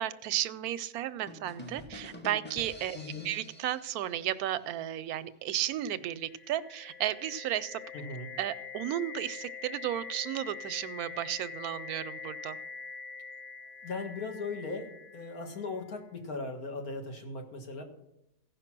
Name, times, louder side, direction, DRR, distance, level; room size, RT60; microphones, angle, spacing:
voice 1, 0.0-3.0 3.2-7.8 8.4-12.6, right 12 dB, 85° right, 15 dB, 1.1 m, -34 dB
sound 1, 1.3-5.0, equal, 10° left, 0.8 m, -48 dB
voice 2, 2.9-3.3 7.9-8.3 13.8-17.8, left 3 dB, 80° left, 3 dB, 2.0 m, -38 dB
sound 2, 6.0-15.9, left 5 dB, 55° left, 0.6 m, -44 dB
15.5 x 5.5 x 6.0 m, 0.83 s
omnidirectional pair, 1.5 m